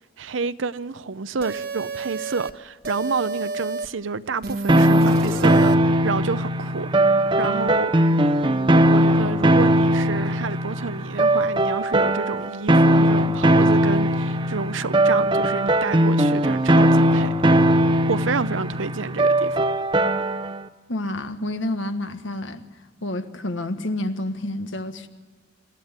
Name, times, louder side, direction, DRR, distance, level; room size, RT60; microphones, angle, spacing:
voice 1, 0.2-6.9 7.4-7.9 8.4-17.3 18.1-19.7, right 4 dB, 85° right, 0.7 m, -29 dB
sound 1, 1.4-2.5 2.8-3.9 4.4-5.8, right 3 dB, 55° right, 1.1 m, -30 dB
sound 2, 4.7-20.6, right 1 dB, 25° right, 0.8 m, -19 dB
voice 2, 20.9-22.6 23.0-25.1, left 1 dB, 80° left, 1.5 m, -29 dB
25.5 x 13.5 x 9.5 m
head